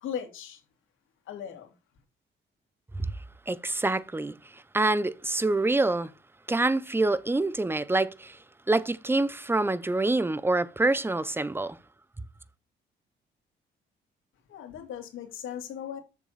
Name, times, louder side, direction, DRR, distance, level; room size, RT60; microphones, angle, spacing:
voice 1, 0.0-0.6 1.3-1.7 14.5-16.0, left 9 dB, 80° left, 2.6 m, -38 dB
voice 2, 3.5-4.3 4.7-6.1 6.5-8.4 8.7-11.8, right 2 dB, 10° right, 0.7 m, -26 dB
7.2 x 6.9 x 4.2 m
cardioid pair, 90°, 20 cm